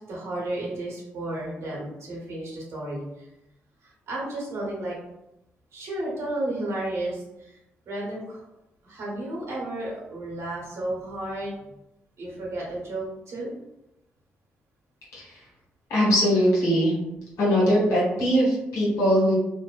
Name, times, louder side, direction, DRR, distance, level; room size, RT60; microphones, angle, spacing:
voice 1, 0.1-3.3 3.8-4.9 5.7-7.6 7.9-8.4 8.8-11.7 12.2-13.5, right 1 dB, 65° right, -4 dB, 1.1 m, -33 dB
voice 2, 15.9-16.9 17.4-19.4, equal, 80° left, -6 dB, 1.2 m, -21 dB
2.6 x 2.1 x 2.4 m, 0.89 s
supercardioid pair, 60°, 5 cm